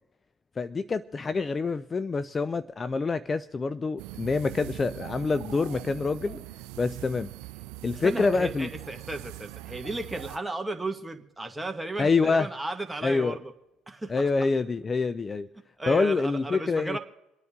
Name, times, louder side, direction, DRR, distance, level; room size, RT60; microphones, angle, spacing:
voice 1, 0.6-6.4 6.8-7.3 7.8-8.7 12.0-12.5 13.0-13.4 14.1-15.5 15.9-17.0, left 4 dB, 30° left, 0.4 m, -26 dB
sound 1, 4.0-10.4, right 18 dB, 80° right, 0.4 m, -42 dB
voice 2, 7.9-13.5 13.9-14.2 15.8-17.0, right 2 dB, 10° right, 1.7 m, -34 dB
27.5 x 9.5 x 3.7 m
supercardioid pair, 80°, 0 cm